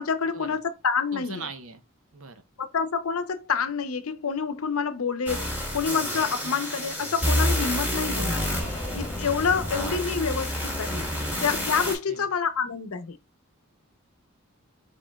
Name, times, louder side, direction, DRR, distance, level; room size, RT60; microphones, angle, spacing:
voice 1, 0.0-1.5 2.6-8.4 8.9-11.1 11.4-13.2, left 6 dB, 80° left, 0.7 m, -28 dB
voice 2, 1.1-1.8 2.1-2.4 12.1-12.3, right 4 dB, 70° right, 0.8 m, -40 dB
sound 1, 5.3-11.9, equal, 10° right, 2.3 m, -28 dB
sound 2, 8.1-9.5, left 1 dB, 10° left, 1.8 m, -40 dB
5.0 x 4.4 x 2.2 m
head